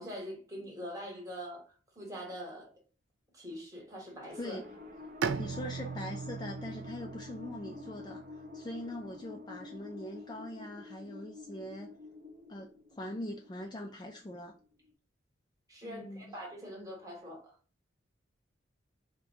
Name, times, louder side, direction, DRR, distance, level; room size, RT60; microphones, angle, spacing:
voice 1, 0.0-2.7 3.3-4.6 15.7-17.5, equal, 20° right, 1.3 m, -43 dB
sound 1, 4.2-14.9, left 2 dB, 45° right, 0.7 m, -49 dB
Bowed string instrument, 5.2-8.8, right 6 dB, 75° right, 0.3 m, -39 dB
voice 2, 5.4-8.2 8.5-11.9 12.5-12.7 13.0-14.6 15.8-16.4, left 1 dB, 25° left, 0.4 m, -42 dB
3.8 x 2.2 x 2.6 m
head